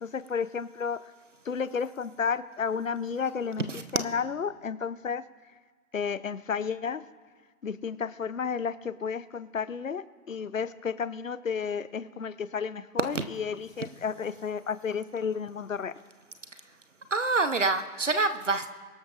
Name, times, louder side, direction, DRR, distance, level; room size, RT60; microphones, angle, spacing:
voice 1, 0.0-1.0 1.4-5.2 5.9-7.0 7.6-15.9, left 6 dB, 60° left, 15 dB, 0.7 m, -32 dB
voice 2, 17.1-18.8, right 3 dB, 55° right, 9 dB, 0.9 m, -26 dB
23.5 x 12.5 x 2.5 m, 1.5 s
figure-of-eight pair, 170°, 46 cm